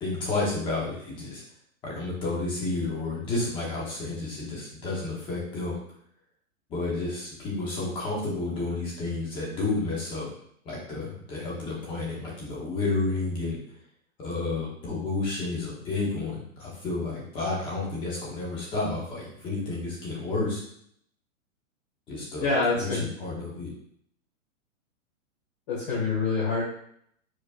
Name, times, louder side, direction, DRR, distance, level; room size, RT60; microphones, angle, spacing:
voice 1, 0.0-1.4 1.8-5.7 6.7-10.3 10.6-13.6 14.2-20.6 22.1-23.7, left 3 dB, 10° left, -5 dB, 1.0 m, -31 dB
voice 2, 22.4-23.1 25.7-26.6, left 3 dB, 30° left, -8 dB, 1.7 m, -26 dB
4.8 x 4.3 x 2.5 m, 0.66 s
hypercardioid pair, 170°, 40 cm